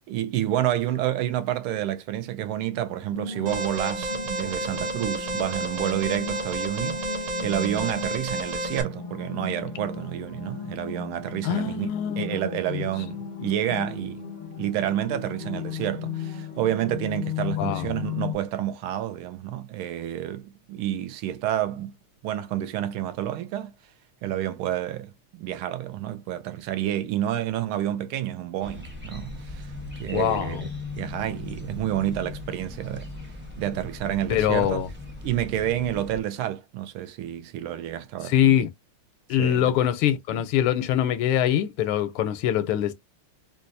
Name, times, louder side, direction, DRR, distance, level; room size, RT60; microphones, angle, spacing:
voice 1, 0.1-11.9 12.2-14.2 14.5-21.9 22.2-23.7 24.2-29.7 30.0-33.1 33.6-34.8 35.2-38.3 39.4-39.7, right 12 dB, 80° right, 1.5 m, -29 dB
sound 1, 3.1-18.3, left 5 dB, 40° left, 0.6 m, -36 dB
Alarm, 3.5-8.8, right 1 dB, 65° right, 1.3 m, -31 dB
voice 2, 11.4-12.8 17.6-17.9 30.1-30.7 34.3-34.9 38.2-38.7 39.3-42.9, left 11 dB, 85° left, 1.5 m, -23 dB
sound 2, 28.6-36.2, left 3 dB, 20° right, 0.3 m, -38 dB
4.0 x 2.5 x 2.6 m
omnidirectional pair, 2.4 m